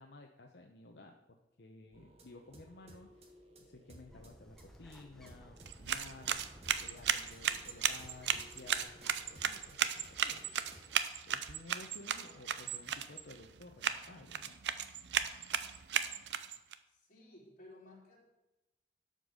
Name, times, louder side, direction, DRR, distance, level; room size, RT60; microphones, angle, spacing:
voice 1, 0.0-6.4 6.8-10.7 11.3-14.6, left 2 dB, 75° left, 2 dB, 0.9 m, -55 dB
sound 1, 1.9-11.0, right 1 dB, 35° right, 1.4 m, -59 dB
Bird, 4.1-10.0, equal, 5° left, 0.8 m, -58 dB
sound 2, 5.6-16.7, right 8 dB, 85° right, 0.6 m, -36 dB
voice 2, 16.9-18.2, left 1 dB, 50° left, -4 dB, 3.8 m, -56 dB
12.0 x 5.4 x 6.4 m, 0.97 s
head